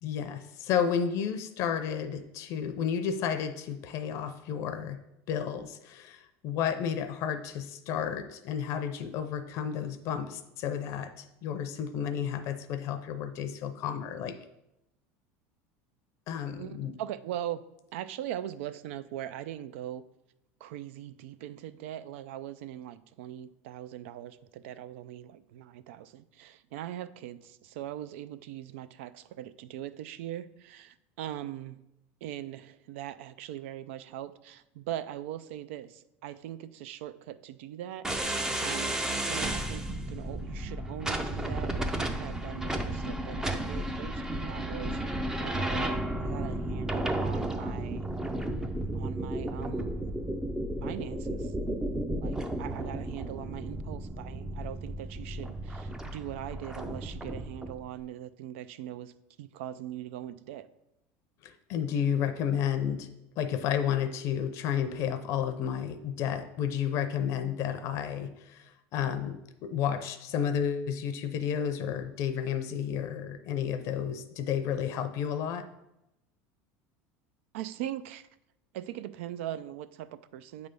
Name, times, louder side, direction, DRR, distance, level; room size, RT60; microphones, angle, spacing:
voice 1, 0.0-5.0 5.3-14.4 16.3-16.9 61.4-75.7, left 8 dB, 50° left, 9 dB, 0.5 m, -32 dB
voice 2, 16.6-17.6 17.9-20.0 20.6-31.8 32.2-39.0 39.3-45.0 45.4-48.0 48.9-49.9 50.8-51.5 52.2-59.1 59.4-60.7 77.5-78.3 78.7-80.7, right 12 dB, 85° right, 14 dB, 0.4 m, -41 dB
sound 1, 38.0-57.8, right 1 dB, 10° right, 0.4 m, -33 dB
8.0 x 3.4 x 5.3 m, 0.88 s
supercardioid pair, 145°, 7 cm